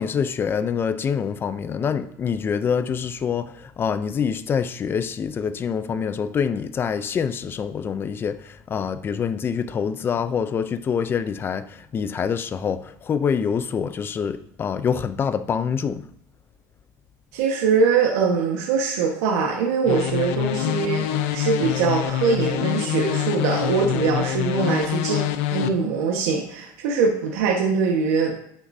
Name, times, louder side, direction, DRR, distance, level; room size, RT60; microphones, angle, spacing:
voice 1, 0.0-16.1, left 7 dB, 25° left, 0.5 m, -26 dB
voice 2, 17.3-25.2 25.5-28.3, right 5 dB, 90° right, 1.4 m, -22 dB
sound 1, 19.9-25.7, left 12 dB, 75° left, 0.6 m, -25 dB
9.9 x 6.0 x 2.7 m
cardioid pair, 135°, 9 cm